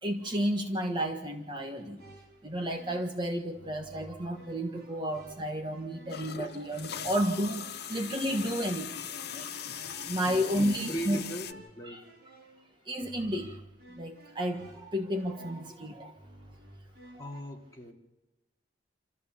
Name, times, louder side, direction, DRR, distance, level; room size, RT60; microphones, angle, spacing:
voice 1, 0.0-2.0 2.4-11.2 11.8-12.0 12.8-13.6 14.0-16.2 17.2-17.3, equal, 25° right, 3 dB, 1.4 m, -32 dB
sound 1, 1.7-17.4, right 1 dB, 55° right, 5.1 m, -54 dB
sound 2, 6.1-11.5, left 8 dB, 60° left, 0.8 m, -40 dB
voice 2, 10.3-12.1 17.0-17.9, right 1 dB, 20° left, -1 dB, 2.6 m, -40 dB
27.5 x 14.0 x 7.2 m, 1.1 s
head